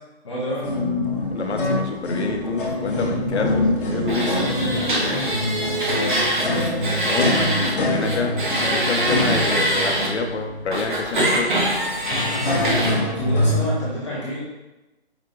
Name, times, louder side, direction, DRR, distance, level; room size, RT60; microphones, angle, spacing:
voice 1, 0.2-0.6 4.3-5.4 12.6-14.4, equal, 30° left, -8 dB, 0.9 m, -29 dB
sound 1, 0.6-13.7, left 1 dB, 50° left, 1.1 m, -25 dB
voice 2, 1.3-4.4 7.0-11.6, left 4 dB, 90° left, 4 dB, 0.7 m, -28 dB
sound 2, 4.1-7.7 8.0-10.1 10.7-12.9, right 1 dB, 50° right, 0.8 m, -24 dB
5.0 x 2.9 x 2.5 m, 1.0 s
hypercardioid pair, 175°, 33 cm